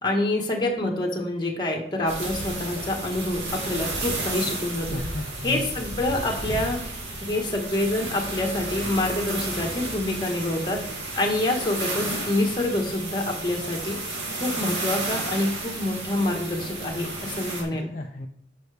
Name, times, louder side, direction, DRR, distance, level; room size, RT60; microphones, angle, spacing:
voice 1, 0.0-5.0 5.4-6.8 7.2-10.8 11.2-14.0 14.4-17.9, left 1 dB, 25° left, 1 dB, 1.5 m, -26 dB
sound 1, 2.1-17.6, right 2 dB, 80° right, 2.4 m, -32 dB
voice 2, 4.9-5.7 5.9-6.1 6.5-6.7 17.7-18.3, left 1 dB, 40° left, 3 dB, 0.5 m, -35 dB
10.5 x 6.0 x 3.4 m, 0.68 s
head